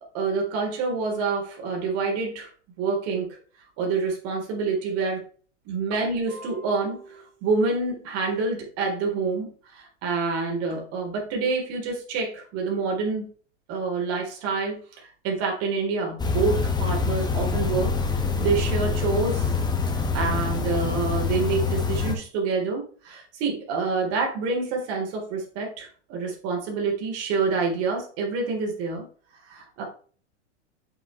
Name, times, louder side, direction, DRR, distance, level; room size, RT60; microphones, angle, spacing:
voice 1, 0.1-2.5 2.8-3.3 3.8-5.2 5.7-13.3 13.7-17.9 18.4-19.5 19.9-29.1 29.5-29.8, right 4 dB, 45° right, 0 dB, 3.8 m, -27 dB
sound 1, 16.2-22.2, left 5 dB, 10° left, 1.5 m, -25 dB
7.9 x 6.4 x 3.2 m, 0.42 s
hypercardioid pair, 120°, 35 cm